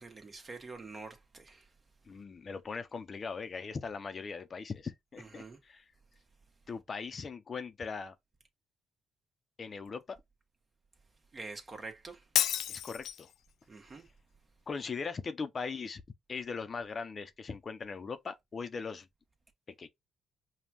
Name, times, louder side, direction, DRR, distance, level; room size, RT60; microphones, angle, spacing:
voice 1, 0.0-1.6 5.2-5.6 11.3-12.2 13.7-14.0, right 3 dB, 35° right, 1.4 m, -46 dB
voice 2, 2.1-5.9 6.7-8.1 9.6-10.2 12.7-13.3 14.7-16.0 16.3-19.1 19.8-19.9, left 5 dB, 45° left, 0.7 m, -40 dB
Shatter, 12.4-13.3, left 11 dB, 75° left, 0.3 m, -30 dB
5.2 x 2.4 x 2.9 m
supercardioid pair, 65°, 0 cm